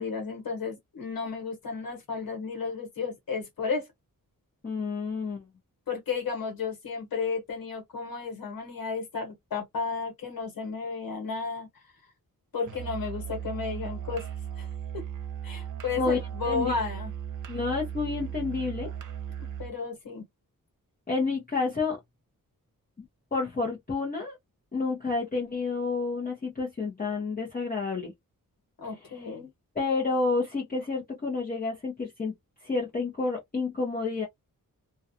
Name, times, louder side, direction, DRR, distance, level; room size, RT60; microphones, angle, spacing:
voice 1, 0.0-3.9 5.9-11.7 12.5-14.3 14.6-14.7 14.9-15.0 15.4-17.1 19.4-20.2 28.8-29.5, left 5 dB, 75° left, 1.3 m, -33 dB
voice 2, 4.6-5.4 16.0-16.2 16.4-16.7 17.5-18.9 21.1-22.0 23.3-24.4 24.7-28.1 29.8-32.3 32.6-34.3, left 4 dB, 25° left, 0.8 m, -29 dB
Musical instrument, 12.6-19.8, right 9 dB, 60° right, 0.7 m, -37 dB
2.3 x 2.3 x 2.6 m
wide cardioid pair, 90°, 35 cm